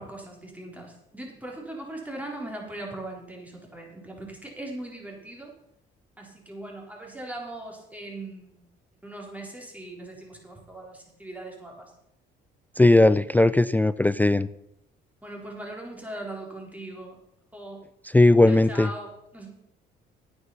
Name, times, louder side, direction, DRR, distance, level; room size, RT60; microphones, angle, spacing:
voice 1, 0.0-5.5 6.2-8.7 9.0-11.9 15.2-17.2 17.5-17.8 18.5-19.5, right 1 dB, 5° right, -1 dB, 4.0 m, -39 dB
voice 2, 12.8-14.5 18.1-18.9, left 2 dB, 10° left, 17 dB, 0.3 m, -18 dB
9.8 x 9.4 x 5.7 m, 0.81 s
supercardioid pair, 80°, 21 cm